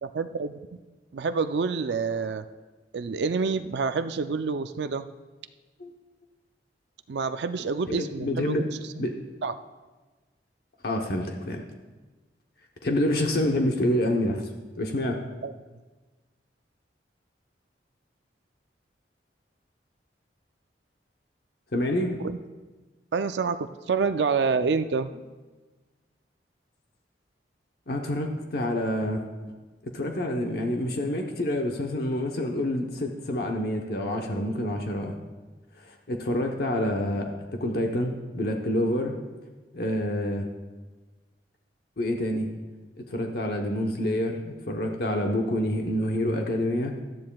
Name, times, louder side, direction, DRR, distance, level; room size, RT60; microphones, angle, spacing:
voice 1, 0.0-0.8 1.1-2.4 2.9-5.1 7.1-8.7 9.0-9.1 9.4-9.5 15.4-15.5 22.2-22.4 23.1-25.1, right 5 dB, 70° right, 10 dB, 0.4 m, -27 dB
voice 2, 7.9-8.6 9.0-9.1 10.8-11.6 12.8-14.5 14.8-15.2 21.7-22.2 27.9-29.2 29.8-35.1 35.8-39.2 39.7-40.5 42.0-42.5 43.0-47.0, left 1 dB, 60° left, 2 dB, 0.9 m, -27 dB
17.0 x 12.5 x 2.3 m, 1.3 s
head